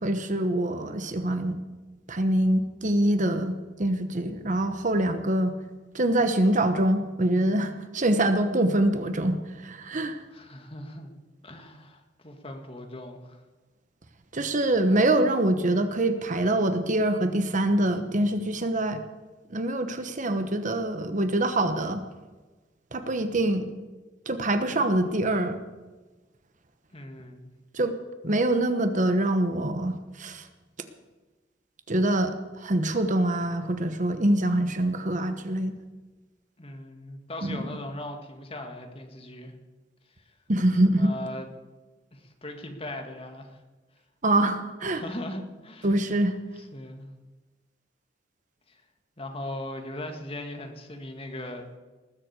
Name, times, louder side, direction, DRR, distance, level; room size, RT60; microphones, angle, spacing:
voice 1, 0.0-1.6 2.1-5.6 5.9-10.2 14.3-19.0 19.5-22.0 22.9-23.7 24.3-25.6 27.7-28.0 28.2-30.5 31.9-35.8 37.4-37.7 40.5-41.1 44.2-45.0 45.8-46.4, right 1 dB, 45° right, 8 dB, 1.1 m, -25 dB
voice 2, 10.3-11.1 11.4-13.4 26.9-27.5 36.6-39.5 40.8-41.5 42.1-43.6 44.9-45.9 46.5-47.1 48.7-48.8 49.2-51.7, left 1 dB, 30° left, 4 dB, 2.1 m, -39 dB
19.5 x 7.6 x 8.2 m, 1.2 s
head